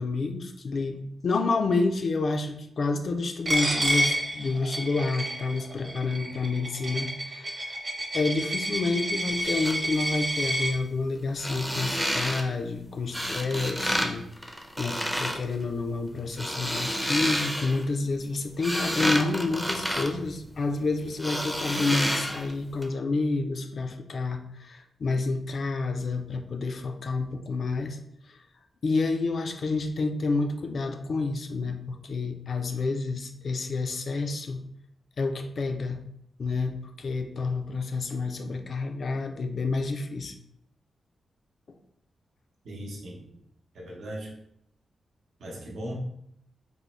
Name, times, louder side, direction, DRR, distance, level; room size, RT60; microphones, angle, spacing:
voice 1, 0.0-7.6 8.1-28.0 28.8-34.6 35.2-36.0 36.4-40.3, left 3 dB, 60° left, 6 dB, 0.4 m, -29 dB
Coin (dropping), 3.5-10.7, right 1 dB, 40° right, 0.9 m, -29 dB
sound 1, 9.3-9.8 11.3-12.4 13.1-14.1 14.4-15.4 16.2-17.8 18.3-20.8 21.2-22.5 22.8-22.9, equal, ahead, 0.5 m, -29 dB
voice 2, 42.6-43.4 43.7-44.4 45.4-45.9, equal, 80° right, -3 dB, 0.7 m, -38 dB
3.8 x 2.0 x 3.0 m, 0.73 s
cardioid pair, 70°, 0 cm